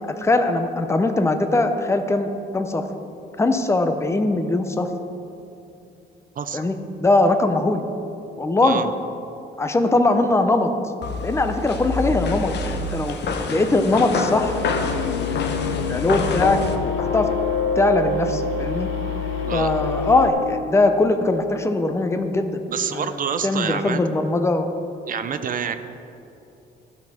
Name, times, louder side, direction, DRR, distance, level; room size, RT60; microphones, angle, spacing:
voice 1, 0.1-2.9 3.4-4.9 6.5-6.7 7.0-7.8 8.4-8.8 9.6-10.7 11.2-13.2 13.5-17.3 17.8-18.9 19.5-22.6 22.9-24.7, left 2 dB, 15° left, 7 dB, 0.6 m, -21 dB
voice 2, 6.4-6.7 8.6-8.9 19.4-19.7 22.7-24.0 25.1-25.7, right 7 dB, 45° right, 10 dB, 0.5 m, -27 dB
sound 1, 11.0-16.8, left 4 dB, 60° left, 0.8 m, -27 dB
sound 2, 14.4-20.3, left 5 dB, 90° left, 0.8 m, -26 dB
12.0 x 6.0 x 4.3 m, 2.8 s
cardioid pair, 90°, 20 cm